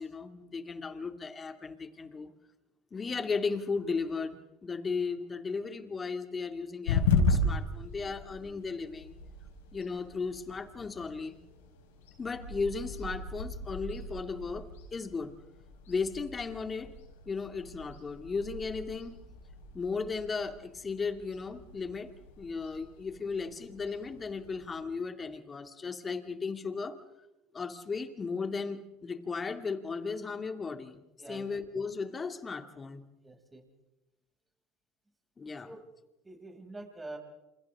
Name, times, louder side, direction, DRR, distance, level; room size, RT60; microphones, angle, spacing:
voice 1, 0.0-2.3 2.9-9.2 9.7-11.4 12.2-15.3 15.9-16.9 17.3-19.2 19.7-27.0 27.5-31.0 31.3-33.0 35.4-35.7, left 4 dB, 25° left, 6 dB, 2.5 m, -36 dB
sound 1, 6.9-24.7, left 3 dB, 90° left, 5.2 m, -36 dB
voice 2, 31.2-31.5 33.2-33.7 35.6-35.8 36.2-37.2, right 2 dB, 15° right, 1 dB, 6.9 m, -45 dB
29.0 x 28.0 x 3.8 m, 0.98 s
hypercardioid pair, 85°, 0 cm